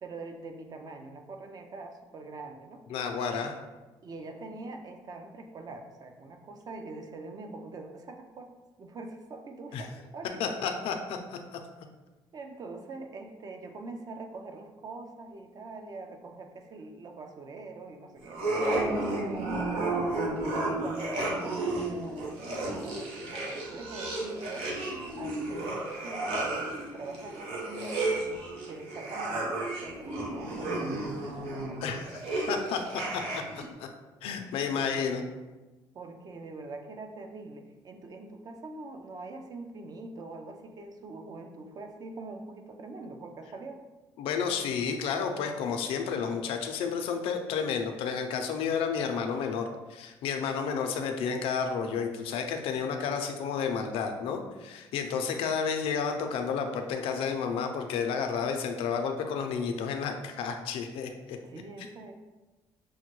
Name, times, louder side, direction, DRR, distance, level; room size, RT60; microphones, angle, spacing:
voice 1, 0.0-2.8 4.0-8.5 8.8-10.6 12.3-19.7 20.1-20.2 20.4-24.7 25.1-31.9 34.7-35.2 35.9-43.8 61.4-62.1, right 3 dB, 40° right, 5 dB, 0.5 m, -44 dB
voice 2, 2.9-3.5 9.7-9.8 10.4-11.4 31.8-32.1 32.5-32.8 33.1-33.4 34.2-35.2 44.2-61.4, left 6 dB, 90° left, 5 dB, 0.5 m, -31 dB
sound 1, 18.3-33.7, right 2 dB, 85° right, 0.9 m, -32 dB
6.2 x 2.2 x 3.0 m, 1.1 s
cardioid pair, 115°, 9 cm